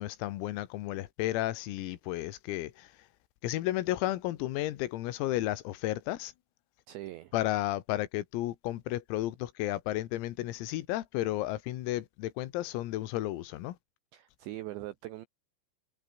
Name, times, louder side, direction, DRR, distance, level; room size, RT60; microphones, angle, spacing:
voice 1, 0.0-2.9 3.4-6.3 7.3-13.8, left 15 dB, 90° left, 4.2 m, -33 dB
voice 2, 6.9-7.3 14.1-15.3, right 15 dB, 75° right, 3.0 m, -41 dB
omnidirectional pair, 6.0 m